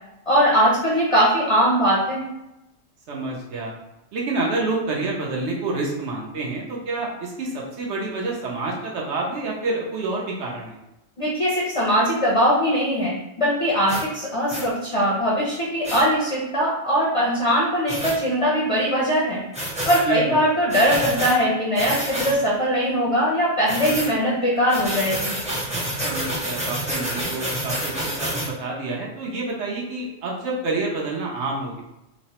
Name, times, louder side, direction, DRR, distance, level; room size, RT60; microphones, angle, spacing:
voice 1, 0.3-2.3 11.2-19.4 19.9-25.3, equal, 45° left, -5 dB, 0.5 m, -21 dB
voice 2, 3.1-3.7 4.1-10.8 20.1-20.2 26.0-31.8, right 2 dB, 80° right, -2 dB, 1.0 m, -28 dB
sound 1, 13.9-14.0 14.5-14.7 15.8-16.0 17.9-18.2 19.5-20.0 20.7-21.3 21.7-22.3 23.7-24.1 24.7-28.5, right 1 dB, 10° right, 0.5 m, -28 dB
3.0 x 2.0 x 2.8 m, 0.92 s
omnidirectional pair, 1.2 m